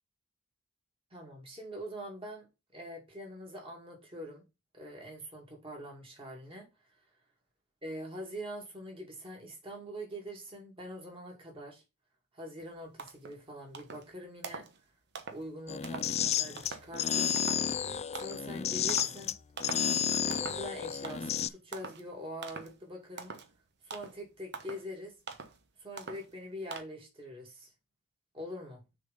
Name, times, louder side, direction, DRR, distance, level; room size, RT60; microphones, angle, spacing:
voice 1, 1.1-2.5 2.7-4.4 4.7-6.7 7.8-11.8 12.3-14.7 15.3-17.4 18.1-19.3 20.2-23.3 23.8-25.1 25.8-27.7 28.3-28.8, equal, 25° right, 2.6 m, -44 dB
sound 1, 12.6-12.7 13.0-13.4 13.7-14.1 14.4-14.8 15.2-15.4 15.8-16.1 16.6-16.9 17.4-17.7 18.2-18.5 18.9-19.2 19.6-19.9 20.3-20.7 21.0-21.4 21.7-22.0 22.4-22.8 23.2-23.5 23.9-24.2 24.5-24.9 25.3-25.6 26.0-26.3 26.7-26.8, right 4 dB, 50° right, 1.0 m, -43 dB
sound 2, 15.7-21.5, left 8 dB, 30° left, 0.3 m, -31 dB
6.4 x 4.0 x 5.4 m
head